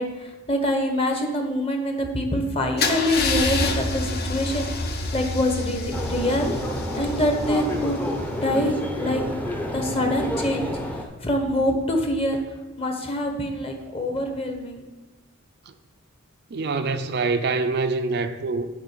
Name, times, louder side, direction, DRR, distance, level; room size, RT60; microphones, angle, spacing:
voice 1, 0.0-6.5 6.9-8.0 8.4-9.2 9.7-10.8 11.2-12.4 12.8-14.9, left 1 dB, 25° left, 1.1 m, -25 dB
Car / Engine starting / Idling, 2.8-8.6, left 3 dB, 45° left, 0.9 m, -28 dB
sound 1, 5.9-11.0, equal, 5° left, 0.7 m, -29 dB
voice 2, 16.5-18.7, right 3 dB, 50° right, 0.4 m, -25 dB
7.3 x 5.1 x 7.3 m
head